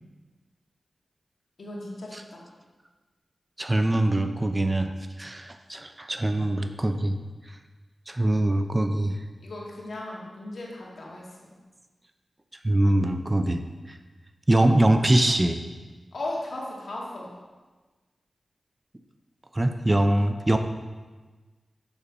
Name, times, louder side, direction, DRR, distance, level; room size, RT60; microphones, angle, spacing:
voice 1, 1.6-2.4 9.4-11.5 16.1-17.3, left 2 dB, 70° left, -3 dB, 2.2 m, -36 dB
voice 2, 3.6-4.9 5.2-7.2 8.1-9.2 12.6-13.6 13.9-14.0 14.5-15.6 19.5-20.6, right 1 dB, 25° right, 7 dB, 0.6 m, -23 dB
7.1 x 6.9 x 5.4 m, 1.3 s
cardioid pair, 60°, 0 cm